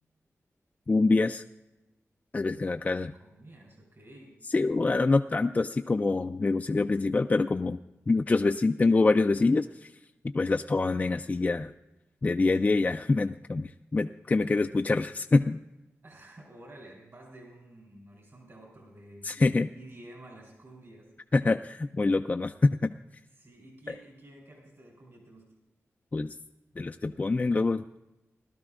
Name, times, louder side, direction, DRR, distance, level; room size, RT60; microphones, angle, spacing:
voice 1, 0.9-1.4 2.3-3.1 4.5-7.8 8.1-9.9 10.2-11.7 12.2-15.6 19.2-19.7 21.3-22.9 26.1-26.3 26.8-28.0, left 3 dB, 30° left, 6 dB, 0.3 m, -25 dB
voice 2, 3.2-4.3 12.6-12.8 16.0-19.4 19.7-21.1 23.4-25.5, right 1 dB, 55° right, 0 dB, 3.5 m, -51 dB
19.5 x 12.5 x 2.4 m, 1.0 s
wide cardioid pair, 80°, 5 cm